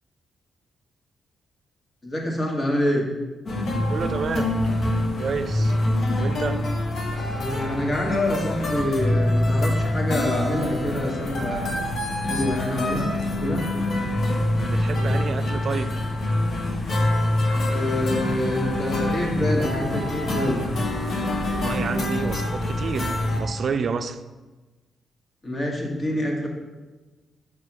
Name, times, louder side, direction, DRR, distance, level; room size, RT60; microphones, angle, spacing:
voice 1, 2.0-3.0 7.1-11.9 12.2-13.7 17.7-20.6 25.4-26.5, left 1 dB, 40° left, -1 dB, 1.8 m, -26 dB
sound 1, 3.5-23.4, left 1 dB, 65° left, 1.2 m, -25 dB
voice 2, 3.9-4.5 5.2-5.8 6.2-6.7 14.4-16.0 21.5-24.2, right 5 dB, 60° right, 10 dB, 0.4 m, -29 dB
5.7 x 4.9 x 4.7 m, 1.2 s
supercardioid pair, 55°, 0 cm